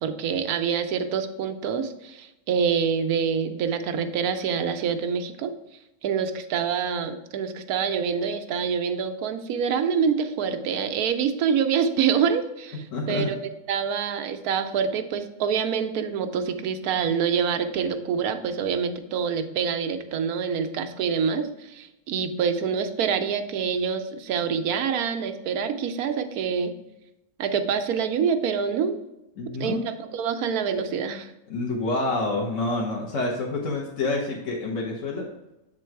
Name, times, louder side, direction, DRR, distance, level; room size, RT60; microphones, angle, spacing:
voice 1, 0.0-5.5 6.0-13.4 13.7-26.7 27.4-29.0 29.6-31.3, right 6 dB, 90° right, 8 dB, 1.2 m, -26 dB
voice 2, 12.9-13.3 29.4-29.8 31.5-35.3, left 2 dB, 60° left, -2 dB, 1.3 m, -27 dB
7.5 x 3.8 x 4.5 m, 0.93 s
omnidirectional pair, 1.5 m